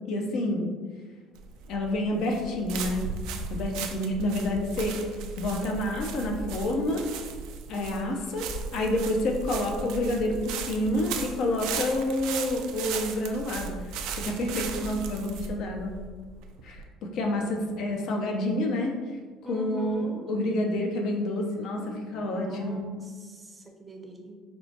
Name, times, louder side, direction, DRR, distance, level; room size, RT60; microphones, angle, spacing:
voice 1, 0.1-0.7 1.7-3.1 3.5-5.0 5.4-7.1 7.7-13.7 14.2-15.9 16.6-18.9 19.5-21.8 22.1-22.8, left 1 dB, 65° left, 1 dB, 0.5 m, -28 dB
sound 1, 1.4-16.9, right 5 dB, 80° right, 0.3 m, -36 dB
voice 2, 14.2-14.9 19.4-20.3 21.6-24.4, right 1 dB, 20° right, 2 dB, 0.6 m, -42 dB
4.3 x 2.1 x 2.7 m, 1.5 s
cardioid pair, 105°, 0 cm